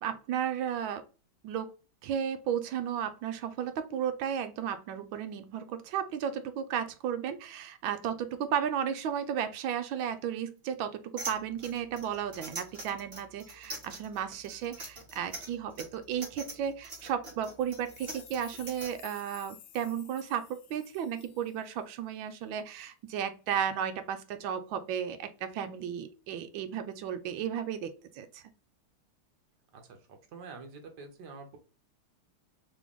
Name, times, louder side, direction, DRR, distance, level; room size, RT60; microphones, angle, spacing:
voice 1, 0.0-1.0 1.4-1.7 2.0-28.4, right 8 dB, 75° right, 9 dB, 1.3 m, -34 dB
sound 1, 11.2-18.9, right 2 dB, 30° right, 1.5 m, -43 dB
sound 2, 17.5-22.0, left 10 dB, 70° left, 1.0 m, -53 dB
voice 2, 29.7-31.6, right 4 dB, 60° right, 4 dB, 1.4 m, -47 dB
3.8 x 3.3 x 3.5 m, 0.35 s
omnidirectional pair, 2.3 m